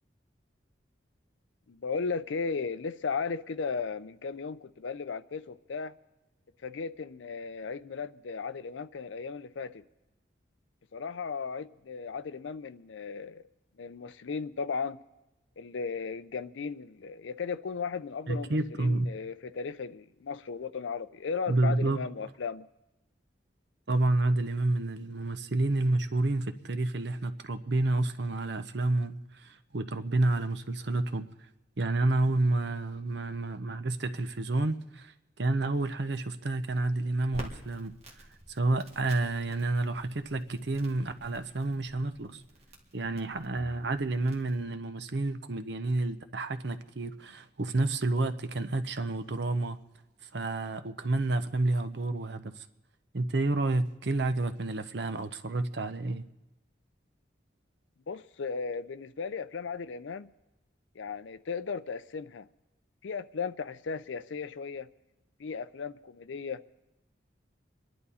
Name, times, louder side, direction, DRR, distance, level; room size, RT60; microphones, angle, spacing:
voice 1, 1.7-6.0 6.6-9.8 10.9-13.4 13.8-15.0 15.6-22.7 58.1-60.3 61.0-62.5 63.0-64.9 65.4-66.6, left 5 dB, 75° left, 0.5 m, -36 dB
voice 2, 18.3-19.1 21.5-22.0 23.9-31.3 31.8-35.1 35.4-37.9 38.5-42.4 42.9-49.8 50.3-52.6 53.1-56.2, right 2 dB, 60° right, 0.7 m, -29 dB
Crackle, 37.3-44.6, right 1 dB, 35° right, 1.9 m, -50 dB
25.5 x 11.0 x 4.2 m
head